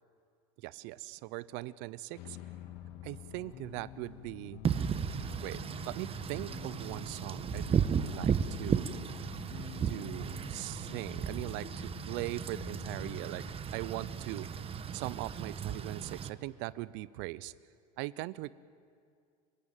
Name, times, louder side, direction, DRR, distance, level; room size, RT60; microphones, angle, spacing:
voice 1, 0.6-2.4 3.0-4.6 5.4-5.6 5.9-8.9 9.9-13.4 13.7-14.5 14.9-17.5 18.0-18.5, right 18 dB, 60° right, 18 dB, 0.7 m, -40 dB
Explosion, 2.1-7.6, left 6 dB, 75° left, 2.8 m, -56 dB
sound 1, 2.2-13.5, left 15 dB, 50° left, 0.9 m, -48 dB
Wind / Rain, 4.6-16.3, right 7 dB, 30° right, 1.3 m, -35 dB
29.0 x 16.0 x 9.1 m, 2.3 s
supercardioid pair, 110°, 21 cm